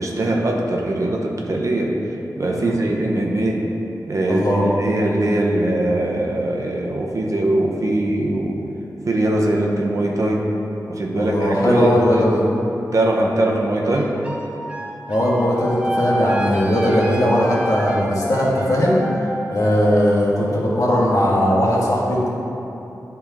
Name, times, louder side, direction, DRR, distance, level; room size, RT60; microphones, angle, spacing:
voice 1, 0.0-2.0 2.4-3.7 4.1-8.6 9.1-10.5 10.9-12.3 12.9-14.1, right 1 dB, 55° right, -1 dB, 0.9 m, -21 dB
voice 2, 4.3-4.6 11.2-12.4 15.1-19.0 19.5-22.3, equal, 55° left, -6 dB, 1.8 m, -18 dB
sound 1, 13.9-20.1, right 1 dB, 20° right, 1.0 m, -28 dB
11.0 x 4.5 x 3.6 m, 2.9 s
wide cardioid pair, 110°, 7 cm